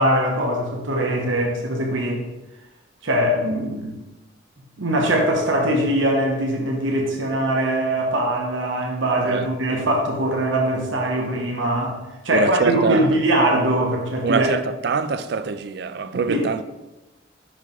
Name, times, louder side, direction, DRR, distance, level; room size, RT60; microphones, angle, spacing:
voice 1, 0.0-2.2 3.0-4.0 4.8-12.0 12.2-14.5 16.3-16.4, right 1 dB, 80° right, 1.1 m, -21 dB
voice 2, 12.3-13.1 14.2-16.6, right 5 dB, 55° right, 0.3 m, -24 dB
5.8 x 4.8 x 4.0 m
head